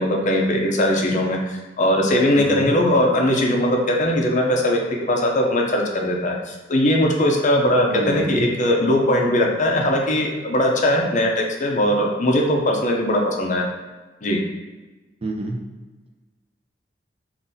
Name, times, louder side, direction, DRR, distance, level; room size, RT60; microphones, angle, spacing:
voice 1, 0.0-4.8 5.1-13.7 14.2-14.4, left 1 dB, 45° left, 1 dB, 0.5 m, -20 dB
voice 2, 2.4-2.7 7.9-8.5 15.2-15.6, right 2 dB, 35° right, 0 dB, 0.5 m, -27 dB
3.8 x 2.5 x 2.6 m, 1.2 s
head